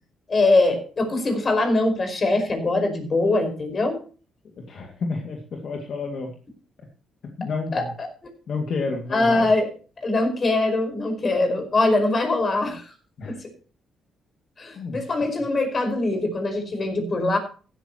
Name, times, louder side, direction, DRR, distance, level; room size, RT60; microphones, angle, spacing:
voice 1, 0.3-4.0 7.7-8.1 9.1-9.7 10.0-12.9 13.3-13.4 14.6-17.4, left 2 dB, 35° left, 6 dB, 5.2 m, -22 dB
voice 2, 4.7-6.3 7.4-7.9 8.5-9.5 13.2-13.3 14.8-15.0, left 4 dB, 60° left, 2 dB, 2.2 m, -30 dB
15.5 x 12.5 x 3.0 m, 0.38 s
cardioid pair, 90°, 0 cm